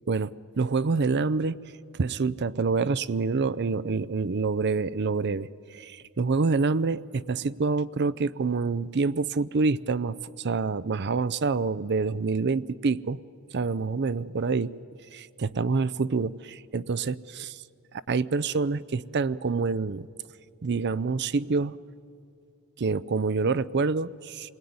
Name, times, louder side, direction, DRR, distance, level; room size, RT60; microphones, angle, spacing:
voice 1, 0.1-1.6 2.0-13.2 13.5-14.7 15.1-17.6 18.1-20.1 20.6-21.8 22.8-24.5, right 4 dB, 50° right, 17 dB, 0.5 m, -27 dB
28.0 x 20.5 x 9.5 m, 2.5 s
head